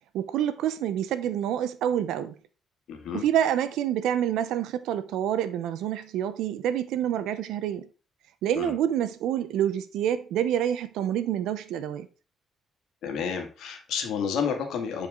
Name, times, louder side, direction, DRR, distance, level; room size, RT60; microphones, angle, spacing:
voice 1, 0.1-2.3 3.1-7.9 8.4-12.1, right 10 dB, 85° right, 0.8 m, -27 dB
voice 2, 2.9-3.2 8.6-8.7 13.0-15.1, left 6 dB, 80° left, 2.1 m, -30 dB
9.7 x 4.9 x 3.8 m
cardioid pair, 90°, 0 cm